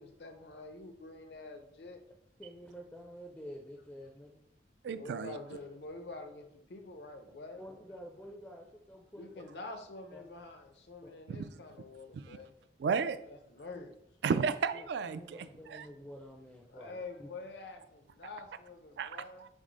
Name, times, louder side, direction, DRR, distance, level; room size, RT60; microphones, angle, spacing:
voice 1, 0.0-2.0 4.9-7.6 9.1-12.6 13.3-13.9 16.7-19.4, left 3 dB, 70° left, 5 dB, 0.7 m, -47 dB
voice 2, 2.4-4.4 7.6-9.5 10.1-10.2 13.7-13.8 14.7-17.3, equal, 10° left, 0 dB, 0.4 m, -49 dB
voice 3, 4.8-5.4 11.3-11.4 12.1-12.4 12.8-13.2 14.2-15.9 19.0-19.1 19.4-19.5, right 6 dB, 75° right, 13 dB, 0.3 m, -33 dB
6.1 x 2.1 x 3.9 m, 0.76 s
head